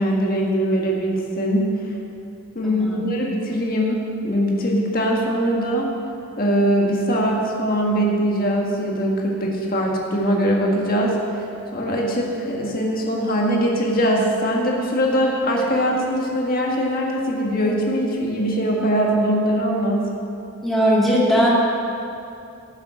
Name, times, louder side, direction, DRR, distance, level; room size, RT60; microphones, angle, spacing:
voice 1, 0.0-1.7 2.5-5.9 6.4-11.2 11.7-20.1, equal, 40° left, -1 dB, 1.7 m, -21 dB
voice 2, 2.6-3.1 20.6-21.5, equal, ahead, -7 dB, 2.1 m, -19 dB
14.5 x 7.2 x 6.3 m, 2.7 s
head